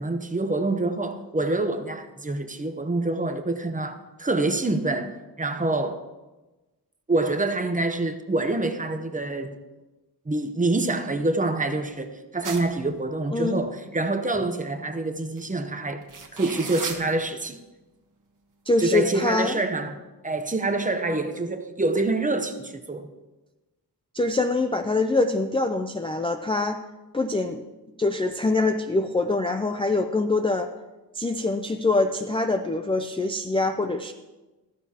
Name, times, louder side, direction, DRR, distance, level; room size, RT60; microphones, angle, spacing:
voice 1, 0.0-6.0 7.1-9.6 10.3-16.1 16.3-17.6 18.8-23.1, right 2 dB, 20° right, 0.7 m, -26 dB
sound 1, 12.4-13.0 15.4-15.5 16.0-17.0, right 5 dB, 55° right, 1.3 m, -34 dB
voice 2, 13.3-13.6 18.7-19.6 24.1-26.8 27.1-27.6 28.0-30.7 31.1-34.1, left 3 dB, 15° left, 0.3 m, -24 dB
14.0 x 13.5 x 2.8 m
wide cardioid pair, 175°, 39 cm